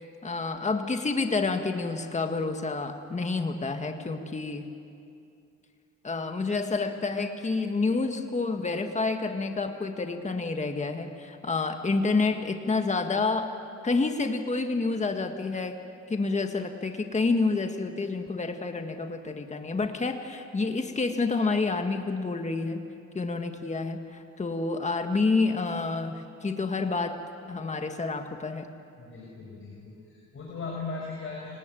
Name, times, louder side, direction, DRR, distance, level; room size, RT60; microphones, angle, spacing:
voice 1, 0.2-4.7 6.0-13.5 13.8-15.8 16.1-22.8 23.1-27.2 27.5-28.7, left 3 dB, 25° left, 6 dB, 1.8 m, -28 dB
voice 2, 29.0-31.5, left 4 dB, 45° left, -3 dB, 6.4 m, -38 dB
29.5 x 18.5 x 9.3 m, 2.6 s
cardioid pair, 90°, 30 cm